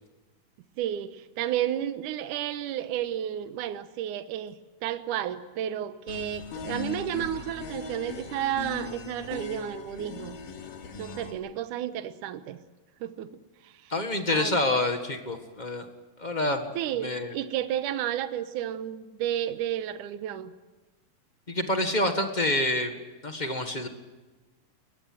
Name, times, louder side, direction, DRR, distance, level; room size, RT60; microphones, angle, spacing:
voice 1, 0.8-10.4 11.0-12.6 13.0-13.3 13.6-13.9 14.3-14.6 16.8-20.5, right 11 dB, 75° right, 11 dB, 2.4 m, -32 dB
sound 1, 6.1-11.3, left 4 dB, 90° left, 4.1 m, -39 dB
voice 2, 13.9-15.9 16.2-16.7 17.0-17.3 21.5-23.0 23.2-23.9, left 2 dB, 30° left, 6 dB, 0.8 m, -27 dB
22.5 x 20.5 x 7.9 m, 1.2 s
omnidirectional pair, 3.7 m